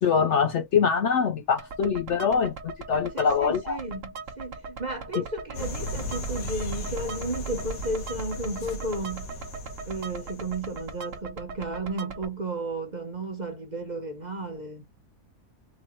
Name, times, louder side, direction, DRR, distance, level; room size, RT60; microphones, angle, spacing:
voice 1, 0.0-3.8, left 6 dB, 65° left, 0.7 m, -24 dB
sound 1, 1.6-12.3, right 4 dB, 55° right, 1.3 m, -40 dB
voice 2, 3.1-9.3 9.9-14.8, right 2 dB, 35° right, 0.8 m, -33 dB
sound 2, 5.5-10.9, equal, 85° left, 1.9 m, -36 dB
4.1 x 2.8 x 2.9 m
omnidirectional pair, 1.6 m